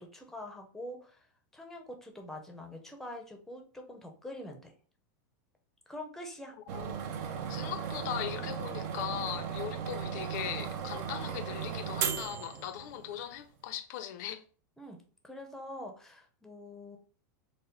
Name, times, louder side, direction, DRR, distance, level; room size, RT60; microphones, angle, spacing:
voice 1, 0.0-4.7 5.9-6.6 14.8-15.0 15.2-17.0, left 1 dB, 5° left, 0.7 m, -45 dB
sound 1, 6.7-13.2, right 7 dB, 50° right, 0.6 m, -36 dB
voice 2, 7.4-14.4, left 10 dB, 60° left, 0.6 m, -39 dB
4.1 x 2.1 x 3.8 m
supercardioid pair, 145°, 11 cm